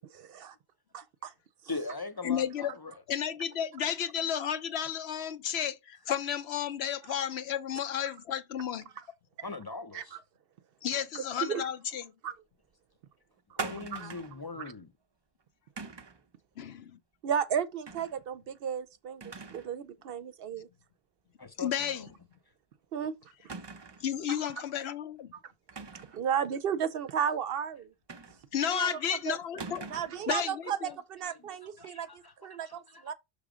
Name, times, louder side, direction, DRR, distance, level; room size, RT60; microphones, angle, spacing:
voice 1, 0.1-0.5 0.9-1.3 9.9-10.0 11.4-11.6 12.2-12.3 13.9-14.1 17.2-20.7 22.9-23.1 26.1-27.9 28.7-28.9 29.3-29.4 29.9-30.8 31.1-32.1 32.4-33.1, right 8 dB, 65° right, 0.8 m, -33 dB
voice 2, 1.7-3.0 9.4-10.2 13.6-14.9 21.4-22.1 31.3-33.1, left 3 dB, 30° left, 0.5 m, -41 dB
voice 3, 2.2-2.7 3.1-8.9 10.8-12.1 16.6-16.9 21.6-22.1 24.0-25.3 28.5-29.9 30.3-30.9, left 9 dB, 80° left, 1.0 m, -32 dB
sound 1, 13.6-14.4 15.8-16.2 17.9-18.2 18.6-18.7 19.2-19.7 20.1-20.2 21.8-22.0 22.3-22.4 23.5-24.1 25.7-26.2 28.1-28.7 29.6-30.2, right 4 dB, 35° right, 0.4 m, -42 dB
6.0 x 3.3 x 4.9 m
omnidirectional pair, 1.1 m